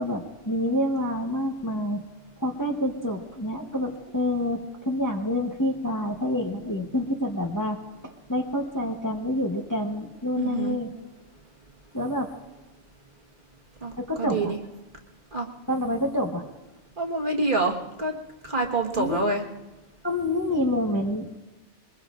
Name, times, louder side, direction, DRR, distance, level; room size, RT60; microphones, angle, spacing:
voice 1, 0.0-2.0 2.4-7.8 8.0-10.9 11.9-12.3 14.0-14.5 15.7-16.4 19.0-19.2 20.0-21.4, left 1 dB, 15° left, 1 dB, 0.9 m, -27 dB
voice 2, 10.3-10.7 13.8-14.6 15.3-15.5 17.0-18.1 18.4-19.4, right 2 dB, 45° right, 0 dB, 1.6 m, -27 dB
23.0 x 21.0 x 2.5 m, 1.1 s
omnidirectional pair, 1.2 m